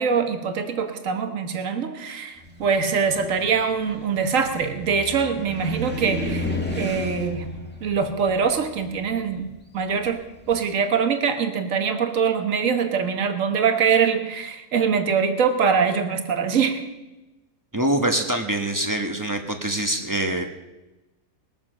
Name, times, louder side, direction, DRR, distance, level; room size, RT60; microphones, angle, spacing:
voice 1, 0.0-7.5 7.8-9.5 9.7-10.2 10.5-16.8, right 6 dB, 65° right, 6 dB, 1.6 m, -23 dB
Car, 2.4-10.6, left 1 dB, 5° left, 1.7 m, -34 dB
voice 2, 17.7-20.4, right 1 dB, 15° right, 4 dB, 1.2 m, -24 dB
21.0 x 7.3 x 6.3 m, 1.1 s
omnidirectional pair, 1.5 m